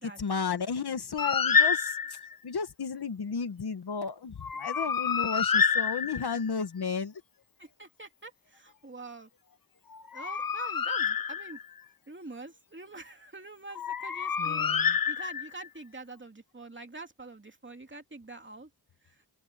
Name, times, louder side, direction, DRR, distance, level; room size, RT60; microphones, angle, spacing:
voice 1, 0.2-2.0 2.4-7.2 14.4-15.0, left 5 dB, 75° left, 1.7 m, -33 dB
Bird, 1.2-2.3 4.4-6.5 9.9-11.8 13.8-15.7, left 6 dB, 60° left, 1.2 m, -28 dB
voice 2, 7.6-9.3 10.1-11.6 12.1-18.7 19.0-19.2, right 3 dB, 30° right, 2.8 m, -45 dB
open air
cardioid pair, 60°, 39 cm